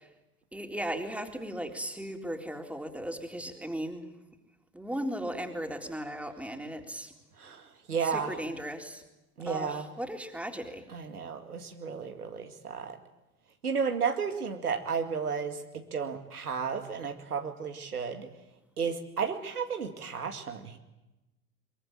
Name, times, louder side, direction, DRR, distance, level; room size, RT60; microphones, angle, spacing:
voice 1, 0.5-4.1 4.7-7.1 8.0-9.0 9.5-10.9, equal, 5° right, 3 dB, 3.8 m, -36 dB
voice 2, 7.4-8.3 9.4-9.9 10.9-13.0 13.6-15.6 15.9-18.3 18.8-20.8, right 6 dB, 85° right, 5 dB, 2.4 m, -33 dB
23.5 x 23.0 x 9.1 m, 0.99 s
figure-of-eight pair, 75°, 44 cm